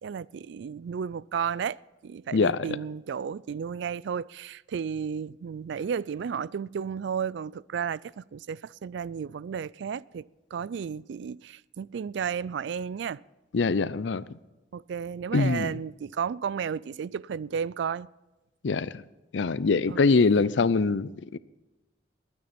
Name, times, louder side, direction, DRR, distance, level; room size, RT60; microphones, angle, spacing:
voice 1, 0.0-13.2 14.7-18.1 19.9-20.4, right 7 dB, 65° right, 0.3 m, -33 dB
voice 2, 2.3-2.7 13.5-14.4 15.3-15.7 18.6-19.0 19.3-21.4, left 4 dB, 70° left, 0.5 m, -24 dB
20.0 x 9.5 x 4.3 m
head